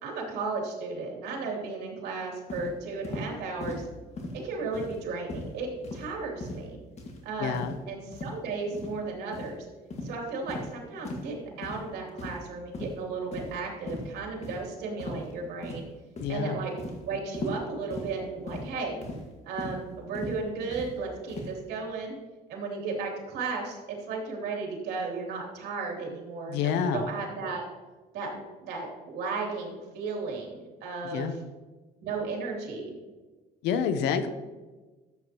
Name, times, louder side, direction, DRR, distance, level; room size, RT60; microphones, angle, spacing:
voice 1, 0.0-3.9 4.3-6.8 7.2-9.7 10.0-15.8 16.3-16.7 17.0-19.0 19.5-22.2 22.5-27.7 28.1-31.3 32.0-33.0, right 4 dB, 75° right, -1 dB, 3.1 m, -34 dB
sound 1, 2.5-2.7 3.0-3.3 3.6-3.8 4.2-4.4 4.7-5.0 5.3-5.5 5.8-6.1 6.4-6.7 7.0-7.2 7.5-7.8 8.1-8.3 8.7-8.9 9.3-9.5 9.9-10.1 10.5-10.7 11.0-11.3 11.6-11.8 12.2-12.5 12.7-12.9 13.3-13.6 13.9-14.1 14.4-14.6 15.0-15.3 15.6-16.4 16.8-17.0 17.3-17.6 17.9-18.1 18.5-18.7 19.0-19.2 19.6-19.8 20.1-20.4 20.7-20.9 21.3-21.5, left 2 dB, 40° left, 1.9 m, -37 dB
voice 2, 7.4-7.7 16.2-16.6 26.5-27.1 31.0-31.4 33.6-34.3, left 7 dB, 90° left, 10 dB, 0.9 m, -28 dB
13.0 x 8.1 x 3.0 m, 1.3 s
cardioid pair, 110°, 17 cm